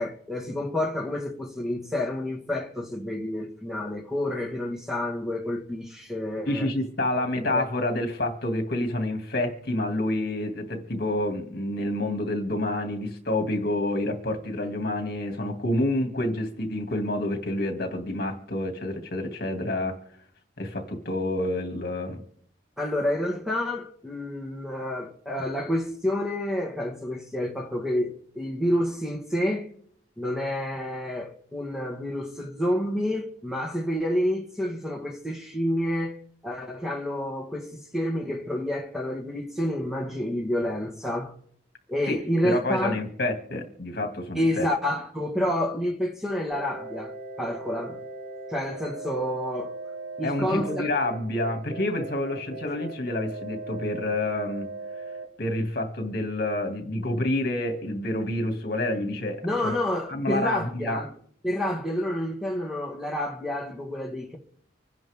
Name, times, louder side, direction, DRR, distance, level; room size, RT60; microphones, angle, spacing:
voice 1, 0.0-6.7 7.1-7.6 22.8-29.7 30.2-41.3 41.9-43.0 44.3-48.0 48.5-49.8 50.2-50.9 59.4-61.1 61.4-64.4, left 1 dB, ahead, 1.7 m, -29 dB
voice 2, 6.5-20.0 20.6-22.2 42.1-44.7 50.2-54.7 55.4-59.7 60.1-61.0, left 1 dB, 55° left, 2.5 m, -28 dB
sound 1, 46.5-55.3, right 2 dB, 80° right, 3.9 m, -39 dB
26.0 x 10.5 x 3.7 m
head